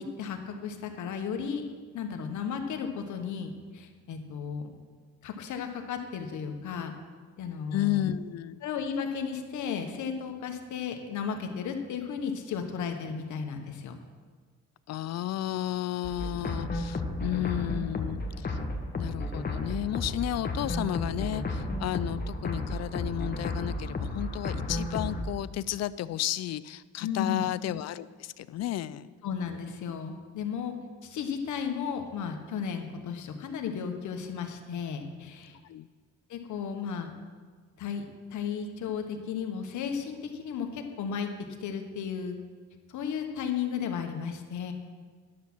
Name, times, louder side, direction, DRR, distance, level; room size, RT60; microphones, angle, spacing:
voice 1, 0.0-1.6 1.9-4.7 5.2-6.9 7.4-8.1 8.6-13.9 27.0-27.5 29.2-30.7 31.0-35.6 36.3-37.1 37.8-38.0 38.3-41.3 41.6-42.4 42.9-44.7, left 7 dB, 75° left, 5 dB, 1.3 m, -34 dB
voice 2, 7.7-8.6 14.9-18.6 19.0-29.1 35.6-35.9, left 13 dB, 60° left, 17 dB, 0.5 m, -33 dB
sound 1, 16.0-25.2, left 2 dB, 30° left, 1.4 m, -33 dB
11.0 x 7.1 x 6.2 m, 1.5 s
cardioid pair, 90°, 30 cm